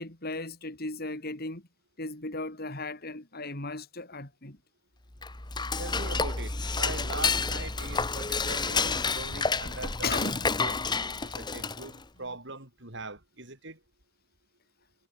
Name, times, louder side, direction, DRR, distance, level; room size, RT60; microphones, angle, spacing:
voice 1, 0.0-1.6 2.0-4.6 10.0-10.5, left 3 dB, 50° left, 3.8 m, -36 dB
Dishes pots and pans / Cutlery silverware, 5.1-12.0, left 4 dB, 20° left, 1.4 m, -30 dB
voice 2, 5.8-10.3 10.6-13.8, right 3 dB, 60° right, 7.6 m, -41 dB
head